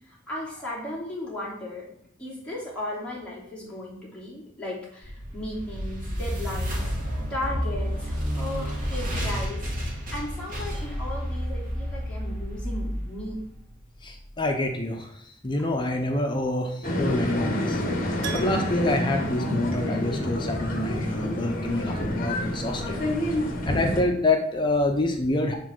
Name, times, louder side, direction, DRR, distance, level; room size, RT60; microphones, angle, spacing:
voice 1, 0.3-1.8 2.2-6.9 7.3-13.4, left 1 dB, 5° left, -8 dB, 3.0 m, -36 dB
sound 1, 5.0-14.2, equal, 45° right, 1.8 m, -31 dB
voice 2, 14.0-17.8 18.3-23.0 23.6-25.5, left 2 dB, 25° left, 3 dB, 0.7 m, -27 dB
sound 2, 16.8-24.0, left 1 dB, 45° left, 1.2 m, -28 dB
Keyboard (musical), 18.2-20.3 20.5-20.6 23.3-23.4 23.7-23.8, right 6 dB, 60° right, 0.7 m, -41 dB
7.1 x 4.2 x 6.1 m, 0.68 s
head